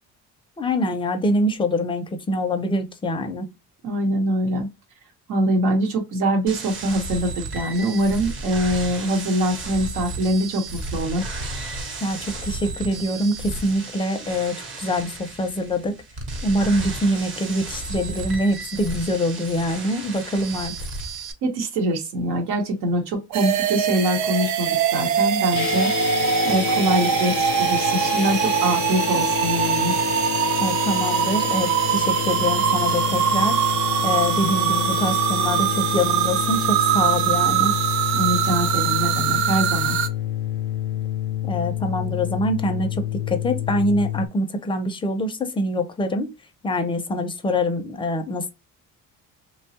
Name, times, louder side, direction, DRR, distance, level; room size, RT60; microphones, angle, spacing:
voice 1, 0.6-3.5 12.0-15.9 16.4-20.7 30.6-33.6 34.0-37.7 41.4-46.3 46.6-48.5, left 1 dB, 15° left, 0.5 m, -24 dB
voice 2, 3.8-4.7 5.3-11.2 21.4-25.9 26.4-29.9 38.1-40.0, right 1 dB, 85° right, 1.1 m, -24 dB
sound 1, 6.5-21.3, right 3 dB, 40° right, 1.0 m, -33 dB
sound 2, 23.3-40.1, right 9 dB, 65° right, 0.5 m, -22 dB
sound 3, 25.5-44.3, left 12 dB, 80° left, 0.5 m, -28 dB
3.0 x 2.3 x 2.7 m
cardioid pair, 135°, 32 cm